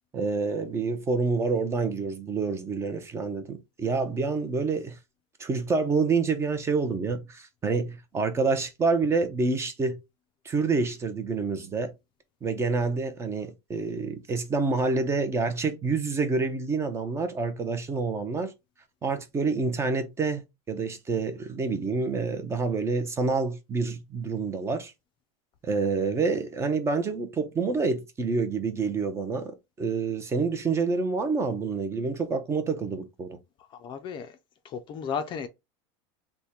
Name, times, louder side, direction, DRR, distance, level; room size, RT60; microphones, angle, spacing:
voice 1, 0.1-5.0 5.4-10.0 10.4-11.9 12.4-18.5 19.0-24.9 25.6-33.4, right 4 dB, 15° right, 0.5 m, -27 dB
voice 2, 33.8-34.3 34.6-35.5, left 6 dB, 30° left, 0.4 m, -33 dB
3.5 x 2.1 x 4.2 m
supercardioid pair, 145°, 15 cm